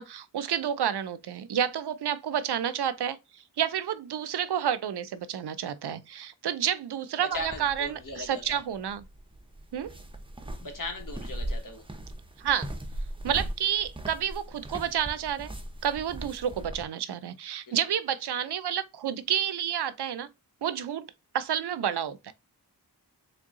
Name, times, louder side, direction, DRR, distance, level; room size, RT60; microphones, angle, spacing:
voice 1, 0.0-9.0 9.7-10.0 12.4-12.7 13.2-15.5 15.8-20.3 20.6-22.3, right 9 dB, 70° right, 0.5 m, -30 dB
voice 2, 7.2-8.6 10.6-11.9 17.7-17.8, left 2 dB, 50° left, 1.2 m, -38 dB
sound 1, 7.3-16.8, right 1 dB, 15° right, 0.6 m, -39 dB
3.8 x 2.2 x 3.6 m
wide cardioid pair, 55°, 41 cm